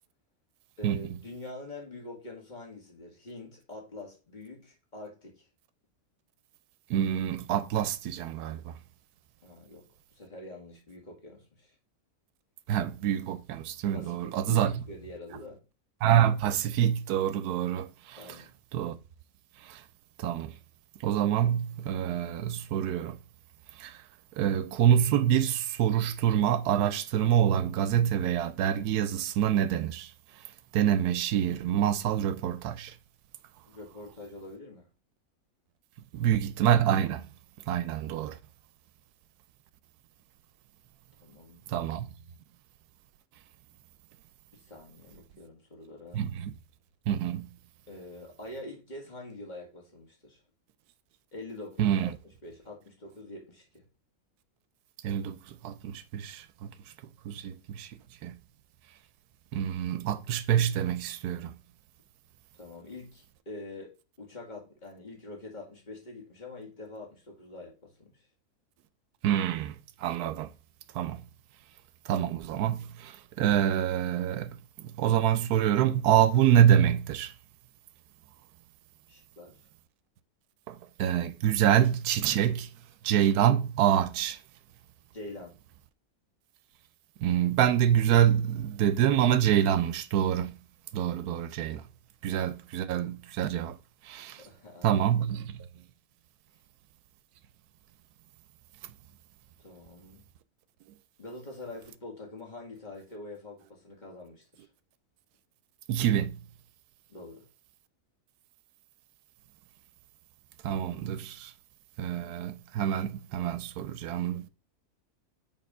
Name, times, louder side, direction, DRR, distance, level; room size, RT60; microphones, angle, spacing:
voice 1, 0.8-5.5 9.4-11.7 13.9-15.6 18.2-18.5 33.7-34.9 41.2-41.6 44.5-46.3 47.9-50.4 51.3-52.1 52.4-53.8 62.6-68.2 79.1-79.7 85.1-85.6 94.4-95.0 99.6-100.3 101.2-104.7 107.1-107.5, left 2 dB, 30° left, 1.9 m, -45 dB
voice 2, 6.9-8.8 12.7-14.7 16.0-18.2 18.7-18.9 19.6-19.8 20.2-20.5 21.0-23.2 23.8-24.0 24.4-30.1 30.7-32.9 36.1-37.3 37.7-38.4 41.7-42.1 46.1-46.5 47.1-47.5 51.8-52.1 55.0-56.7 57.2-58.0 58.2-58.3 59.5-61.5 69.2-70.5 70.9-71.2 72.1-74.6 75.0-77.3 80.7-82.7 83.0-84.4 87.2-90.6 90.9-91.8 92.2-93.7 94.0-94.4 94.8-95.6 105.9-106.4 110.6-111.5 112.0-114.5, right 10 dB, 90° right, 1.1 m, -26 dB
6.6 x 3.7 x 5.4 m
omnidirectional pair, 1.6 m